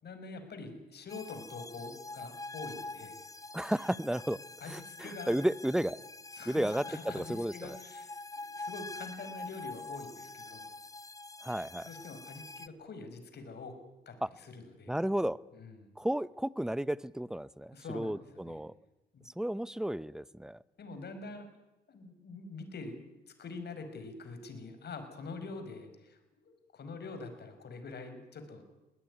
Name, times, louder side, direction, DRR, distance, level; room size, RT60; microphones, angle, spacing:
voice 1, 0.0-3.2 4.6-5.4 6.3-10.7 11.8-15.0 15.5-15.9 17.7-18.6 19.1-19.3 20.8-21.5 21.9-23.0 23.3-28.6, left 3 dB, 55° left, 8 dB, 5.6 m, -45 dB
sound 1, 1.1-12.7, left 2 dB, 15° left, 1.0 m, -45 dB
voice 2, 3.5-4.4 4.7-6.0 6.5-7.8 11.4-11.9 14.2-14.3 14.9-15.4 16.0-18.7 19.3-20.6, right 1 dB, 5° right, 19 dB, 0.8 m, -33 dB
21.0 x 18.5 x 9.8 m, 1.0 s
supercardioid pair, 70°, 21 cm